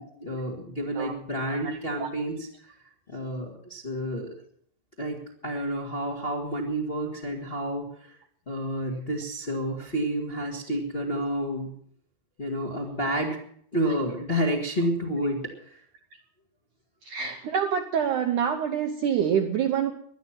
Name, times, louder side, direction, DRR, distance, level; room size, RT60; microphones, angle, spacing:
voice 1, 0.0-2.8 3.1-4.3 5.0-8.2 8.5-11.7 12.4-13.4 13.7-15.8, equal, 50° left, 0 dB, 0.6 m, -30 dB
voice 2, 1.5-2.1 17.0-19.9, right 8 dB, 85° right, 5 dB, 1.8 m, -27 dB
18.0 x 11.5 x 6.0 m, 0.63 s
omnidirectional pair, 5.0 m